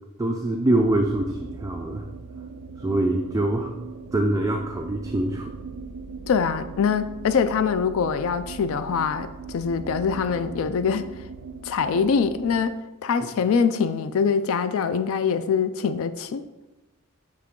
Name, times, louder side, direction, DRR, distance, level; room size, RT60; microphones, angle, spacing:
voice 1, 0.2-2.1 2.8-3.7 4.1-5.5, right 1 dB, 15° right, 3 dB, 0.4 m, -24 dB
sound 1, 0.8-12.6, right 4 dB, 80° right, 0.5 m, -40 dB
voice 2, 6.3-11.0 11.6-12.8 13.0-16.4, left 6 dB, 65° left, 12 dB, 0.4 m, -24 dB
9.6 x 3.3 x 3.7 m, 1.1 s
head